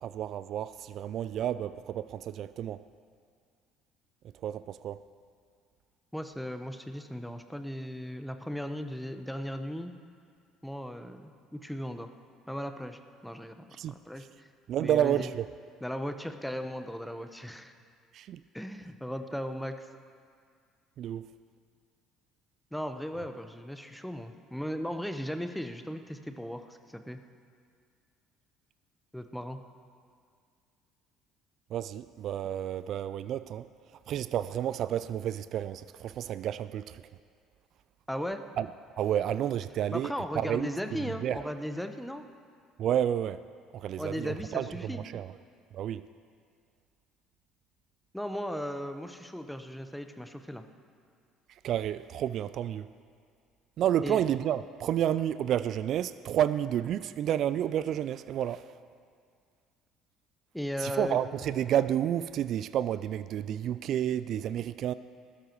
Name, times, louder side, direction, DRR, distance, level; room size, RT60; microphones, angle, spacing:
voice 1, 0.0-2.8 4.4-5.0 13.8-13.9 14.7-15.5 18.1-18.4 21.0-21.3 31.7-33.7 34.1-37.0 38.6-38.7 39.0-40.7 41.0-41.5 42.8-43.4 43.7-45.3 45.7-46.0 51.6-52.9 53.8-58.6 60.8-64.9, right 10 dB, 55° right, 14 dB, 0.3 m, -30 dB
voice 2, 6.1-9.9 10.6-12.1 12.5-13.6 13.9-14.5 14.8-15.3 15.8-17.7 18.5-19.9 22.7-27.2 29.1-29.6 38.1-38.4 39.9-42.3 44.0-45.0 48.1-50.6 54.0-54.2 60.5-61.2, equal, 5° left, 7 dB, 1.0 m, -37 dB
20.0 x 12.5 x 3.1 m, 2.2 s
hypercardioid pair, 60°, 0 cm